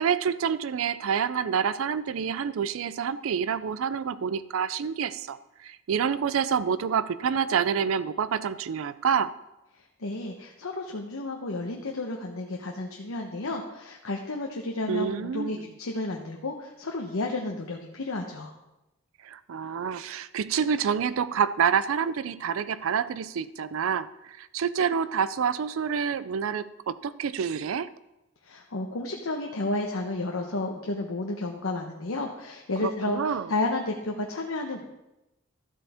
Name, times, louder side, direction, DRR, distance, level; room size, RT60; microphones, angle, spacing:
voice 1, 0.0-9.3 14.9-15.7 19.2-27.9 32.8-33.5, right 7 dB, 75° right, 15 dB, 0.4 m, -28 dB
voice 2, 10.0-18.5 28.4-34.8, left 2 dB, 75° left, 1 dB, 0.9 m, -32 dB
13.0 x 7.8 x 3.5 m, 0.94 s
head